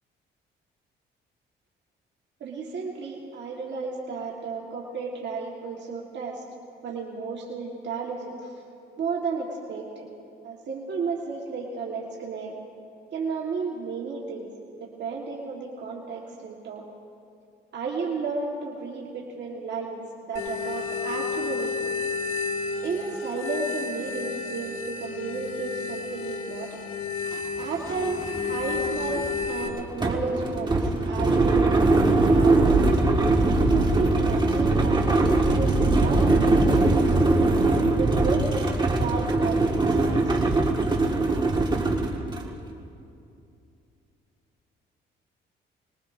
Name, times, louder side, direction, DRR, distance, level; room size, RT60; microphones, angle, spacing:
voice 1, 2.4-6.4 6.8-8.6 9.0-10.1 10.4-12.6 13.1-14.5 14.8-16.8 17.7-21.9 22.8-26.8 27.6-32.9 33.7-35.2 35.5-37.5 37.9-38.7 39.0-40.5, right 4 dB, 60° right, -2 dB, 1.7 m, -33 dB
sound 1, 20.3-29.7, left 5 dB, 85° left, 1.5 m, -31 dB
sound 2, 27.3-27.4 27.7-42.5, right 2 dB, 20° right, 1.9 m, -22 dB
25.5 x 21.0 x 2.7 m, 2.7 s
cardioid pair, 90°, 20 cm